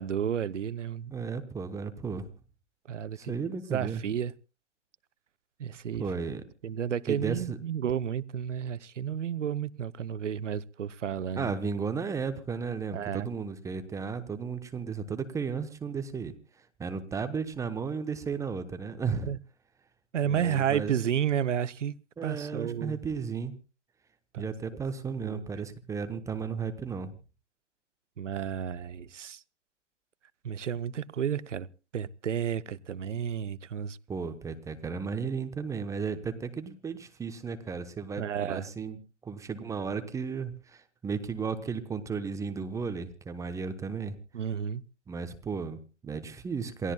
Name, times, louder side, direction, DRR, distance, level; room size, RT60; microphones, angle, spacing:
voice 1, 0.0-1.1 2.9-3.4 3.7-4.3 5.6-6.0 6.6-11.5 12.9-13.3 19.1-19.4 20.1-21.9 22.2-23.0 24.3-24.5 25.2-25.4 28.2-29.4 30.4-31.7 31.9-34.0 38.2-38.7 44.3-44.8, right 8 dB, 75° right, 0.8 m, -31 dB
voice 2, 1.1-2.3 3.2-4.0 6.0-6.4 7.1-7.6 11.4-16.3 16.8-19.3 20.2-21.0 22.2-23.5 24.4-27.2 34.1-39.0 39.2-44.2 45.1-46.9, right 5 dB, 10° right, 0.9 m, -34 dB
28.0 x 16.5 x 2.3 m
figure-of-eight pair, 125°, 36 cm